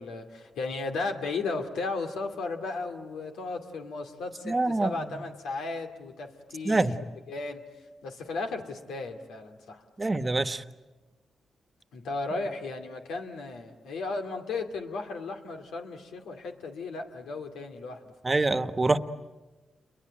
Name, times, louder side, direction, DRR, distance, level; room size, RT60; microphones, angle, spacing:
voice 1, 0.0-6.8 7.3-7.6 8.0-9.8 11.9-18.3, left 3 dB, 90° left, 4 dB, 2.5 m, -35 dB
voice 2, 4.4-5.0 6.6-7.0 10.0-10.6 18.2-19.0, right 2 dB, 30° right, 11 dB, 1.3 m, -25 dB
29.0 x 22.5 x 9.0 m, 1.2 s
cardioid pair, 55°, 0 cm